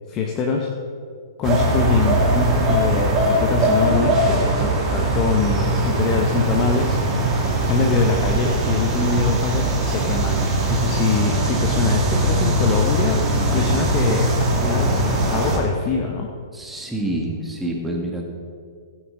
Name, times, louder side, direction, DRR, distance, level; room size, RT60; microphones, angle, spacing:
voice 1, 0.1-0.7 1.4-7.3 7.7-13.2 13.5-15.0 15.3-16.3, left 5 dB, 25° left, 1 dB, 1.1 m, -23 dB
sound 1, 1.4-15.6, right 1 dB, 20° right, 2.4 m, -20 dB
voice 2, 16.5-18.3, right 1 dB, 5° right, -1 dB, 1.8 m, -27 dB
15.5 x 9.6 x 3.9 m, 2.2 s
figure-of-eight pair, 115°, 2 cm